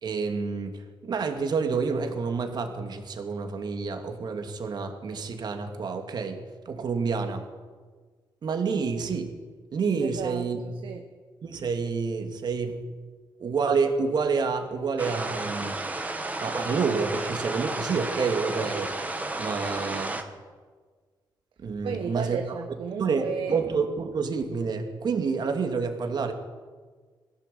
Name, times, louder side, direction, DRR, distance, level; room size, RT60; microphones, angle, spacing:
voice 1, 0.0-7.5 8.4-9.3 9.7-10.6 11.4-12.8 13.4-15.8 16.4-18.9 19.4-20.2 21.6-22.4 23.0-26.3, right 5 dB, 55° right, 5 dB, 2.6 m, -28 dB
voice 2, 10.0-11.0 21.8-23.6, right 6 dB, 85° right, 5 dB, 1.5 m, -34 dB
sound 1, 15.0-20.2, right 2 dB, 20° right, 2.0 m, -32 dB
22.0 x 16.0 x 8.6 m, 1.5 s
wide cardioid pair, 130°, 9 cm